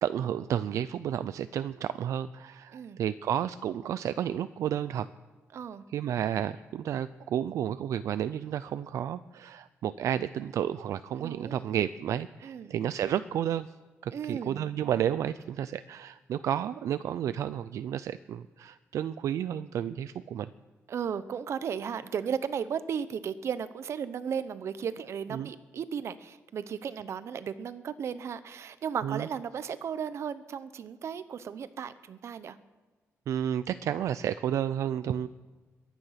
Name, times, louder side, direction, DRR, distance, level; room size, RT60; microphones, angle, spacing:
voice 1, 0.0-5.1 5.9-13.7 14.0-20.5 25.3-25.5 29.0-29.3 33.3-35.3, right 10 dB, 80° right, 13 dB, 0.4 m, -31 dB
voice 2, 5.5-5.8 11.2-11.6 12.4-12.7 14.1-14.6 20.9-32.6, right 7 dB, 60° right, 14 dB, 0.8 m, -35 dB
22.0 x 9.7 x 5.8 m, 1.3 s
cardioid pair, 130°, 5 cm